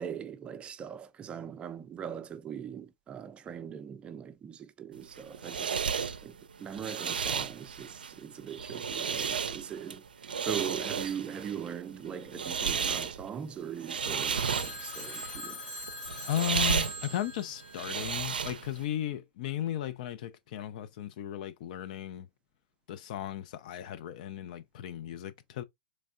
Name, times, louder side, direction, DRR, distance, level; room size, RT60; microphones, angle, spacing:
voice 1, 0.0-5.8 6.2-10.0 10.4-15.6, right 8 dB, 25° right, 0.4 m, -40 dB
sound 1, 5.0-18.8, right 6 dB, 90° right, 0.4 m, -34 dB
Telephone, 14.3-18.5, left 2 dB, 85° left, 1.7 m, -42 dB
voice 2, 16.3-22.3 22.9-25.6, left 11 dB, 60° left, 0.4 m, -36 dB
3.4 x 3.2 x 2.4 m
hypercardioid pair, 115°, 5 cm